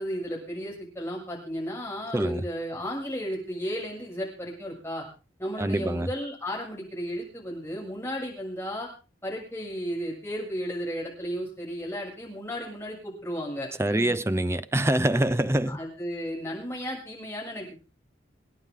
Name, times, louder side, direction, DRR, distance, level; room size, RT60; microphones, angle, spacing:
voice 1, 0.0-5.0 5.4-8.9 9.2-14.2 15.7-17.8, equal, 15° left, 7.3 m, -34 dB
voice 2, 2.1-2.4 5.6-6.1 13.8-15.8, right 1 dB, 15° right, 0.7 m, -25 dB
28.5 x 10.0 x 3.7 m
head